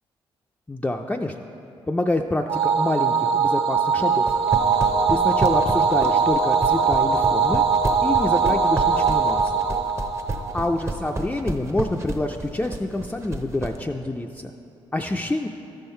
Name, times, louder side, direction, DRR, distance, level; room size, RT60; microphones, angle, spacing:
voice 1, 0.7-1.3 1.9-4.3 5.1-7.6 8.0-9.6 10.5-14.5 14.9-15.5, left 2 dB, 15° left, 2 dB, 0.4 m, -27 dB
sound 1, 2.5-11.1, right 5 dB, 60° right, 0.8 m, -21 dB
sound 2, 4.2-13.8, right 2 dB, 25° right, 0.7 m, -30 dB
13.0 x 5.5 x 4.4 m, 2.8 s
cardioid pair, 65°, 11 cm